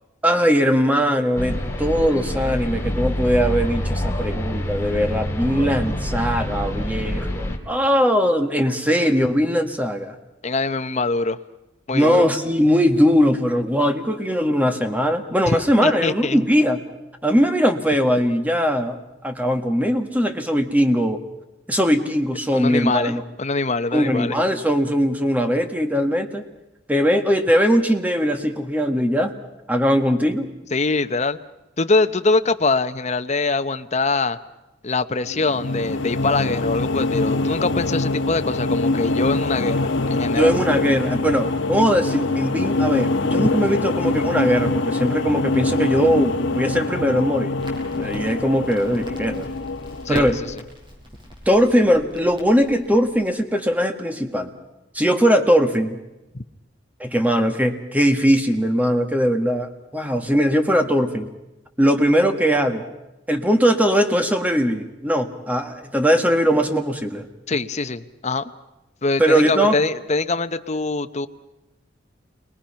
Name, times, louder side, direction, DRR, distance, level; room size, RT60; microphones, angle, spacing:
voice 1, 0.2-10.1 11.9-16.8 17.2-19.0 19.2-21.2 21.7-23.2 23.9-26.4 26.9-29.3 29.7-30.5 40.3-47.5 48.0-49.5 50.1-50.4 51.4-54.5 54.9-56.0 57.0-61.3 61.8-62.8 63.3-67.3 69.2-69.8, equal, 10° right, 6 dB, 1.7 m, -20 dB
sound 1, 1.3-7.6, left 1 dB, 15° left, 2.7 m, -26 dB
voice 2, 10.4-11.4 11.9-12.3 15.5-16.4 22.5-24.4 30.7-31.4 31.8-34.4 34.8-40.6 50.0-50.6 67.5-68.4 69.0-71.3, left 3 dB, 35° left, 9 dB, 0.9 m, -23 dB
sound 2, 35.2-50.6, left 2 dB, 80° left, 1.1 m, -24 dB
Crackle, 47.6-53.3, equal, 25° right, 5.2 m, -41 dB
29.5 x 22.5 x 5.8 m, 0.96 s
head